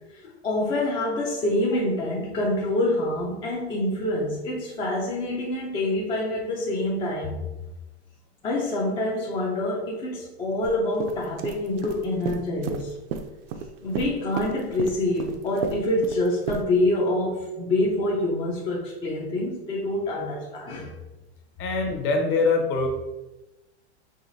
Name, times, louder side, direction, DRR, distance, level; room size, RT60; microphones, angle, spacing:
voice 1, 0.4-7.3 8.4-12.9 13.8-20.9, left 1 dB, 15° left, -4 dB, 0.4 m, -26 dB
Concrete Footsteps, 10.6-10.7 11.0-13.7 14.0-16.6, right 6 dB, 55° right, 0.5 m, -32 dB
voice 2, 21.6-22.9, left 3 dB, 35° left, 3 dB, 0.8 m, -23 dB
4.8 x 3.1 x 2.6 m, 1.0 s
supercardioid pair, 135°, 34 cm